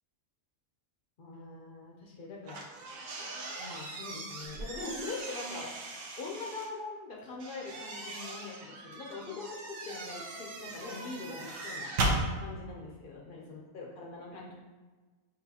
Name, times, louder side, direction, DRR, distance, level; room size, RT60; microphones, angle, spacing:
voice 1, 1.2-2.6 3.6-5.7 6.2-11.9 12.4-14.5, left 3 dB, 65° left, -2 dB, 0.5 m, -42 dB
sound 1, 2.4-6.7 7.4-12.2, right 2 dB, 70° right, 1.1 m, -38 dB
6.6 x 2.4 x 2.8 m, 1.3 s
omnidirectional pair, 1.5 m